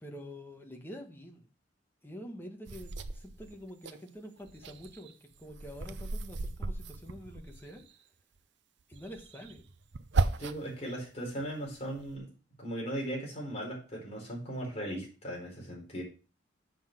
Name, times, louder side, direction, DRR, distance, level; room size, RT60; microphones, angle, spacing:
voice 1, 0.0-1.4 2.0-5.1 5.4-7.8 8.9-9.6, equal, 10° left, 3 dB, 1.4 m, -46 dB
sound 1, 2.7-4.0 4.4-7.9 8.9-10.8 11.3-12.2, right 3 dB, 65° right, 0.6 m, -36 dB
voice 2, 10.4-12.3 12.6-16.0, right 1 dB, 35° left, -3 dB, 4.5 m, -38 dB
7.2 x 5.7 x 5.9 m, 0.36 s
head